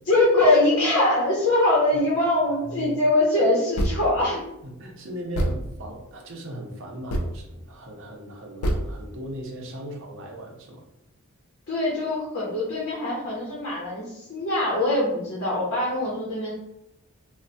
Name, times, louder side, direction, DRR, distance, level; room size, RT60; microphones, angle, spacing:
voice 1, 0.1-4.4 11.7-16.5, left 2 dB, 55° left, -6 dB, 0.8 m, -22 dB
voice 2, 2.6-3.0 4.6-10.8, right 1 dB, 60° right, 0 dB, 0.6 m, -38 dB
sound 1, 3.8-4.2 4.6-4.7 5.3-5.8 7.1-7.3 8.6-8.9, equal, 75° left, 0.4 m, -25 dB
3.1 x 2.1 x 2.6 m, 0.86 s
head